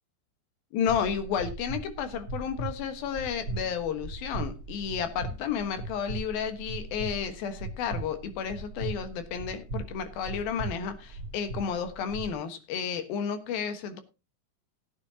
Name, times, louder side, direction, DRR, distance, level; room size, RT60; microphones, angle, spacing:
voice 1, 0.7-14.0, left 7 dB, 80° left, 3.2 m, -32 dB
sound 1, 0.9-12.3, right 3 dB, 45° right, 1.6 m, -39 dB
16.0 x 10.0 x 2.8 m
omnidirectional pair, 4.2 m